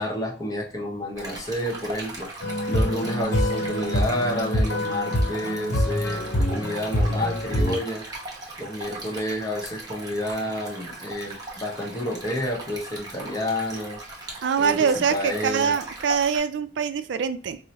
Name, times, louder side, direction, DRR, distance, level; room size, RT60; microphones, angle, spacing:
voice 1, 0.0-2.3 2.7-8.1 8.6-14.0 14.6-15.7, left 1 dB, 20° left, 1 dB, 0.8 m, -30 dB
Stream, 1.2-16.4, right 2 dB, 20° right, 0.9 m, -39 dB
sound 1, 2.4-7.8, left 1 dB, 65° left, 0.8 m, -25 dB
voice 2, 14.4-17.6, right 6 dB, 70° right, 11 dB, 0.3 m, -24 dB
4.5 x 2.0 x 2.7 m, 0.41 s
head